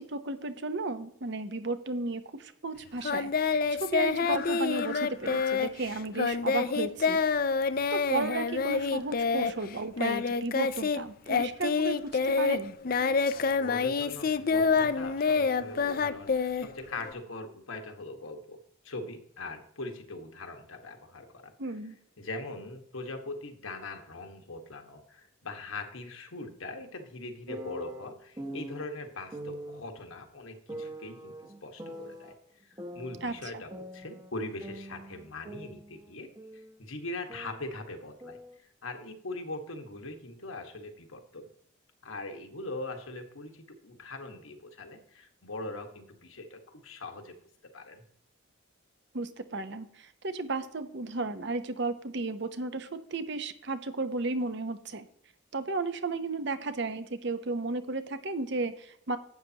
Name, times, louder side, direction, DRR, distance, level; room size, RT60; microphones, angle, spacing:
voice 1, 0.0-3.3 3.7-7.2 7.9-12.7 21.6-22.0 33.2-33.6 49.1-55.0 55.5-59.2, right 3 dB, 55° right, 10 dB, 0.8 m, -34 dB
Singing, 3.0-11.0 11.3-17.1, left 5 dB, 45° left, 0.4 m, -27 dB
voice 2, 13.6-16.3 16.5-21.5 22.2-31.3 31.6-32.3 32.6-36.3 36.5-38.4 38.8-41.5 42.0-47.3 47.7-48.0, left 2 dB, 75° left, 4 dB, 1.5 m, -41 dB
sound 1, 27.5-28.8 29.3-29.8 30.7-32.3 32.8-34.3 34.6-36.8 37.0-38.6, right 1 dB, 20° right, 0.9 m, -43 dB
11.5 x 8.6 x 2.9 m, 0.69 s
head